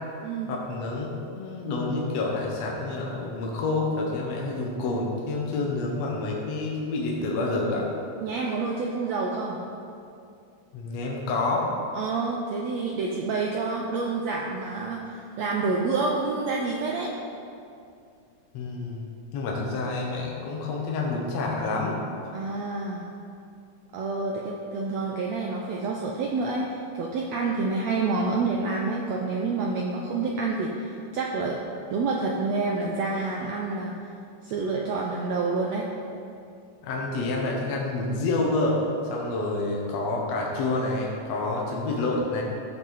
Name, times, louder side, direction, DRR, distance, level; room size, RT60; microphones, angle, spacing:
voice 1, 0.5-1.1 1.3-7.9 10.7-11.7 18.5-19.0 19.3-22.0 36.8-38.8 39.1-42.4, left 2 dB, 60° left, -2 dB, 2.1 m, -28 dB
voice 2, 8.2-9.6 11.9-17.1 22.3-23.0 23.9-31.6 31.9-33.9 34.4-35.9, right 3 dB, 85° right, -1 dB, 1.5 m, -28 dB
14.0 x 7.7 x 4.1 m, 2.5 s
omnidirectional pair, 4.0 m